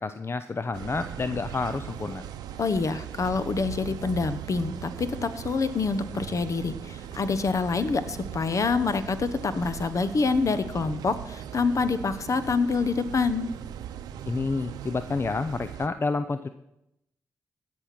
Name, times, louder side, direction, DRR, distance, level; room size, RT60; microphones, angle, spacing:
voice 1, 0.0-2.2 14.3-16.5, left 3 dB, 40° left, 11 dB, 0.6 m, -29 dB
sound 1, 0.7-15.9, right 10 dB, 85° right, 0.7 m, -39 dB
voice 2, 2.6-13.5, left 4 dB, 55° left, 12 dB, 1.0 m, -26 dB
17.0 x 6.5 x 6.0 m, 0.85 s
supercardioid pair, 45°, 7 cm